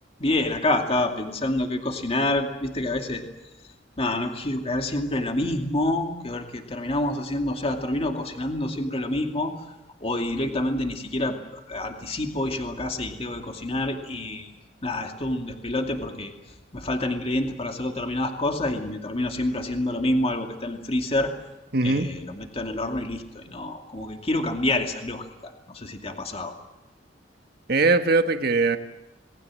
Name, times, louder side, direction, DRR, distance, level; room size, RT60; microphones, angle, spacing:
voice 1, 0.2-3.2 4.0-9.5 10.0-14.5 14.8-16.3 16.7-21.3 21.8-26.5, left 1 dB, 35° left, 4 dB, 2.5 m, -27 dB
voice 2, 21.7-22.1 27.7-28.8, right 3 dB, 60° right, 7 dB, 1.5 m, -21 dB
28.5 x 20.0 x 7.7 m, 0.98 s
head